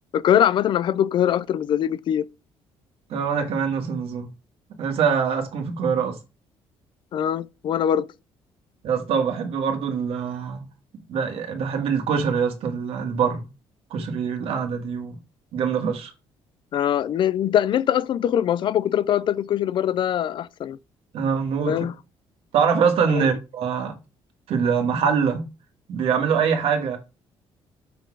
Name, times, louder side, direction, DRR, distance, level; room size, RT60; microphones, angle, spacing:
voice 1, 0.1-2.2 7.1-8.1 16.7-20.8 21.7-21.9 23.1-23.3, left 10 dB, 50° left, 0.4 m, -22 dB
voice 2, 3.1-4.3 4.8-6.2 8.8-10.6 11.1-13.4 13.9-15.2 15.5-16.1 21.1-21.8 22.5-23.9 24.5-25.4 25.9-27.0, right 6 dB, 65° right, 1.7 m, -24 dB
6.5 x 4.2 x 4.7 m
cardioid pair, 140°, 10 cm